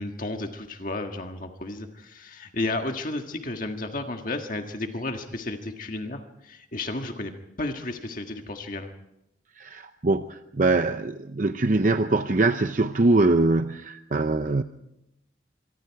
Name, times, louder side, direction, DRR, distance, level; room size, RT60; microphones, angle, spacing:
voice 1, 0.0-7.3 7.6-8.9, left 2 dB, 45° left, 4 dB, 1.6 m, -32 dB
voice 2, 9.6-14.6, right 2 dB, 45° right, 9 dB, 0.7 m, -23 dB
25.0 x 24.5 x 4.7 m, 0.84 s
head